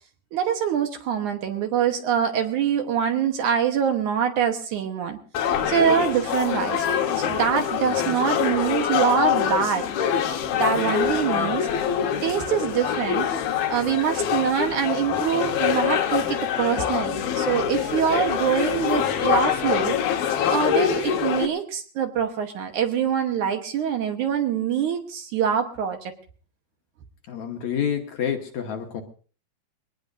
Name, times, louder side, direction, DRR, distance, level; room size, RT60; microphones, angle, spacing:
voice 1, 0.3-5.2 5.7-6.9 7.2-9.9 10.5-11.7 12.2-13.3 13.7-20.0 20.5-26.1, right 8 dB, 65° right, 5 dB, 2.4 m, -24 dB
sound 1, 5.3-21.5, left 9 dB, 90° left, 3.2 m, -25 dB
voice 2, 27.3-29.0, left 8 dB, 65° left, 4 dB, 2.2 m, -28 dB
23.0 x 18.5 x 2.6 m, 0.41 s
omnidirectional pair, 4.2 m